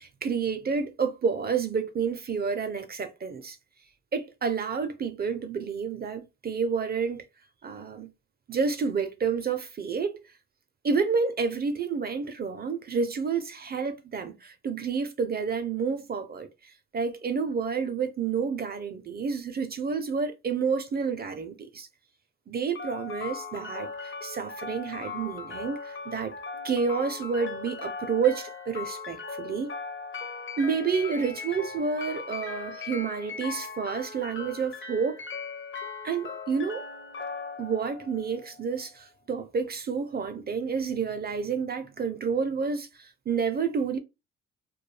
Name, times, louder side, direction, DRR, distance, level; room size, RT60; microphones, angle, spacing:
voice 1, 0.0-3.6 4.1-7.2 7.6-8.1 8.5-10.2 10.8-21.9 22.5-26.3 26.6-29.7 30.6-35.2 36.0-36.9 37.6-44.0, right 5 dB, 35° right, 0.4 m, -29 dB
sound 1, 22.7-38.8, left 4 dB, 40° left, 0.6 m, -39 dB
2.2 x 2.2 x 3.1 m
cardioid pair, 90°, 30 cm